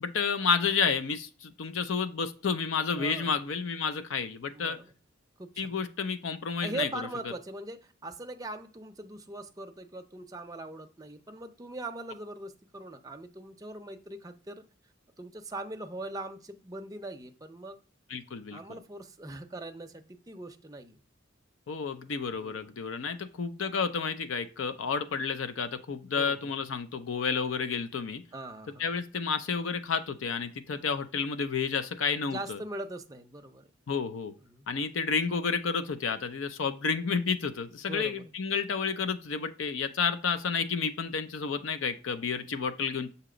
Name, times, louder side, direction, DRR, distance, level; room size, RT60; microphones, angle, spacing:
voice 1, 0.0-4.8 5.6-6.9 18.1-18.6 21.7-28.2 28.8-32.6 33.9-34.3 34.7-43.1, left 5 dB, 85° left, 10 dB, 0.5 m, -30 dB
voice 2, 3.0-3.3 4.5-4.9 5.4-5.7 6.6-14.6 15.2-17.8 18.5-21.0 22.4-22.7 26.1-26.5 28.3-28.9 32.3-33.7 34.4-34.7 37.9-38.3, right 2 dB, 20° right, 5 dB, 0.5 m, -41 dB
6.7 x 2.8 x 5.0 m, 0.37 s
head